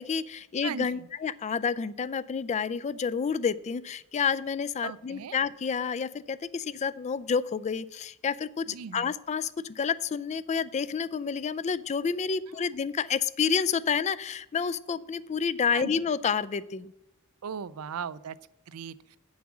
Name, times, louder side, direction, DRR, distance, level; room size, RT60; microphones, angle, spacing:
voice 1, 0.0-8.7 8.9-16.9, left 6 dB, 30° left, 16 dB, 0.3 m, -29 dB
voice 2, 0.6-1.1 4.8-5.4 8.7-9.1 12.5-12.7 15.7-15.9 17.4-18.4 18.7-19.2, right 7 dB, 75° right, 17 dB, 0.4 m, -38 dB
8.4 x 7.2 x 6.0 m, 0.87 s
head